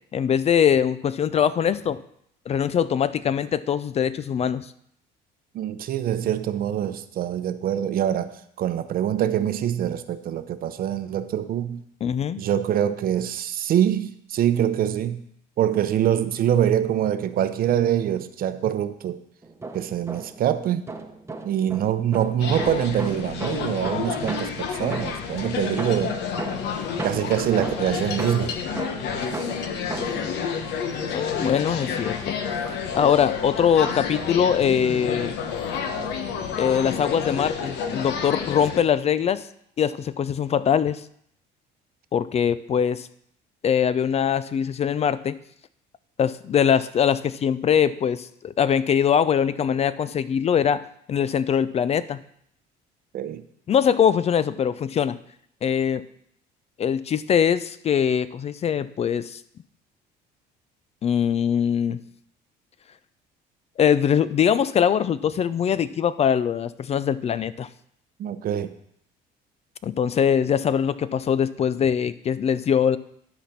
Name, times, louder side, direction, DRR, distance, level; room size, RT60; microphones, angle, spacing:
voice 1, 0.1-2.0 2.5-4.7 12.0-12.4 31.1-32.4 32.9-35.3 36.6-39.5 39.8-41.0 42.1-43.1 43.6-45.4 46.2-52.2 53.7-55.2 55.6-56.0 56.8-59.4 61.0-62.0 63.8-67.7 69.8-73.0, left 8 dB, 35° left, 16 dB, 0.4 m, -22 dB
voice 2, 5.5-11.8 12.4-15.2 15.6-19.2 19.7-20.8 21.4-26.2 27.0-28.6 53.1-53.4 68.2-68.8, right 10 dB, 55° right, 12 dB, 0.7 m, -24 dB
sound 1, 19.4-20.5 20.9-25.4 25.8-30.3, right 3 dB, 15° right, 0.9 m, -36 dB
sound 2, 22.4-38.8, left 6 dB, 75° left, 1.1 m, -30 dB
11.5 x 4.1 x 5.9 m, 0.69 s
cardioid pair, 100°, 18 cm